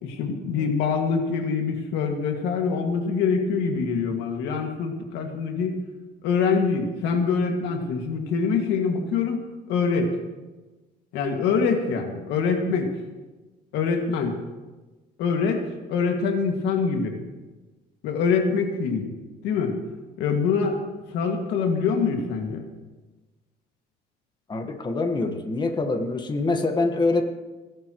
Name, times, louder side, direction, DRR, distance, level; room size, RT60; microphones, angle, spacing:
voice 1, 0.0-5.8 6.2-9.4 9.7-10.1 11.1-12.9 13.7-14.3 15.2-15.6 15.9-17.1 18.0-19.1 19.4-19.8 20.2-20.8 21.1-22.6, left 5 dB, 90° left, 3 dB, 2.1 m, -24 dB
voice 2, 24.5-27.2, left 3 dB, 25° left, 5 dB, 1.5 m, -25 dB
29.0 x 11.5 x 3.1 m, 1.2 s
cardioid pair, 110°, 17 cm